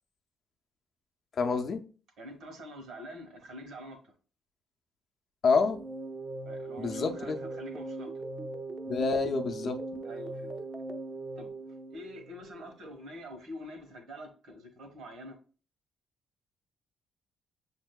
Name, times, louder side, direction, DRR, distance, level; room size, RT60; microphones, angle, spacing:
voice 1, 1.4-1.8 5.4-5.8 6.8-7.4 8.9-9.8, left 4 dB, 55° left, 0.5 m, -27 dB
voice 2, 2.2-4.1 6.4-8.1 10.0-10.6 11.3-11.5 11.9-15.4, equal, 75° right, 1.1 m, -46 dB
sound 1, 5.5-12.7, right 2 dB, 55° right, 0.6 m, -40 dB
sound 2, 7.3-11.0, right 2 dB, 10° right, 0.4 m, -45 dB
6.3 x 2.6 x 2.2 m
cardioid pair, 90°, 0 cm